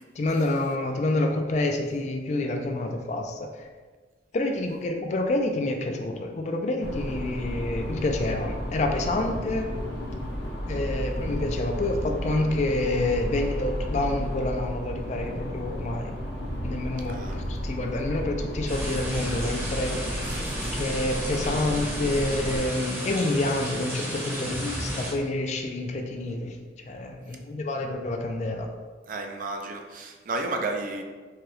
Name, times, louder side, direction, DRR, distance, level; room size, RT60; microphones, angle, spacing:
voice 1, 0.2-3.7 4.3-9.7 10.7-16.1 16.6-20.4 20.6-26.6 26.8-28.7, left 2 dB, 40° left, 4 dB, 0.3 m, -28 dB
sound 1, 6.8-22.6, equal, 65° left, 0.7 m, -33 dB
voice 2, 17.1-17.4 20.2-20.8 29.1-31.0, right 2 dB, 45° right, 3 dB, 0.4 m, -33 dB
sound 2, 18.7-25.1, right 1 dB, 15° right, 0.7 m, -33 dB
4.7 x 2.2 x 3.1 m, 1.4 s
head